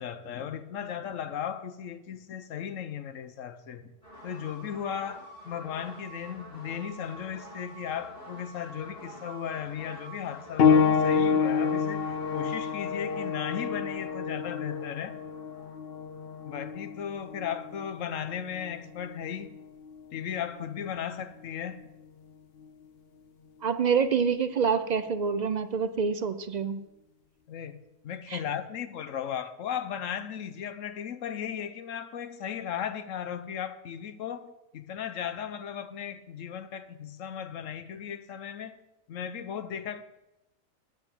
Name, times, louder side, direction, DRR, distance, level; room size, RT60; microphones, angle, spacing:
voice 1, 0.0-3.9 4.2-15.2 16.4-19.6 20.1-21.8 27.5-27.8 28.0-38.8 39.1-40.0, left 8 dB, 75° left, 1.2 m, -36 dB
sound 1, 4.0-17.6, right 1 dB, 35° left, 4.0 m, -48 dB
sound 2, 10.6-20.8 21.8-21.9 22.6-22.7, left 6 dB, 55° left, 0.9 m, -28 dB
voice 2, 23.6-26.8 28.3-28.4, right 6 dB, 55° right, 0.5 m, -26 dB
9.1 x 8.1 x 7.1 m
omnidirectional pair, 1.4 m